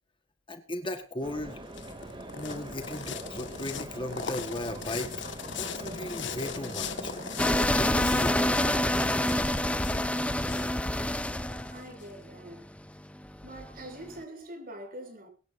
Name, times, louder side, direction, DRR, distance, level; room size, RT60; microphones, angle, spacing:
voice 1, 0.5-1.6 2.4-7.1 7.7-8.6 10.9-11.1, left 1 dB, 25° left, 1.6 m, -37 dB
sound 1, 1.2-12.1, left 6 dB, 65° left, 1.8 m, -40 dB
sound 2, 1.2-9.4, right 1 dB, 25° right, 2.7 m, -42 dB
sound 3, 7.4-14.1, left 1 dB, 5° left, 0.7 m, -27 dB
voice 2, 11.3-12.8 13.4-15.3, right 1 dB, 45° right, 6.9 m, -45 dB
23.5 x 12.0 x 2.7 m
head